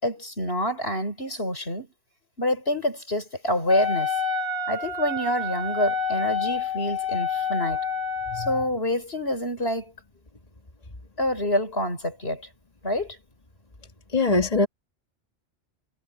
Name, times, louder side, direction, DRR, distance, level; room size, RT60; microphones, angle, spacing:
voice 1, 0.0-1.9 2.4-4.1 4.7-7.8 8.4-9.9 11.2-12.4 12.8-13.2, left 1 dB, 60° left, 5.9 m, -27 dB
Wind instrument woodwind instrument, 3.7-8.7, left 5 dB, 60° right, 8.0 m, -28 dB
voice 2, 14.1-14.7, left 3 dB, 35° left, 2.0 m, -21 dB
omnidirectional pair, 1.2 m